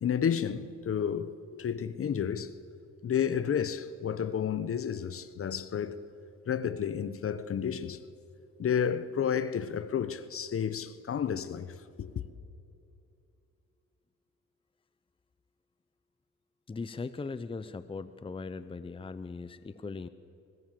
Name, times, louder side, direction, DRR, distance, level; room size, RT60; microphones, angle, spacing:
voice 1, 0.0-2.5 3.0-6.0 6.5-8.0 8.6-12.2, left 8 dB, 45° left, 1.0 m, -31 dB
voice 2, 16.7-20.1, left 4 dB, 20° left, 0.7 m, -39 dB
23.0 x 19.0 x 7.6 m
cardioid pair, 90°, 30 cm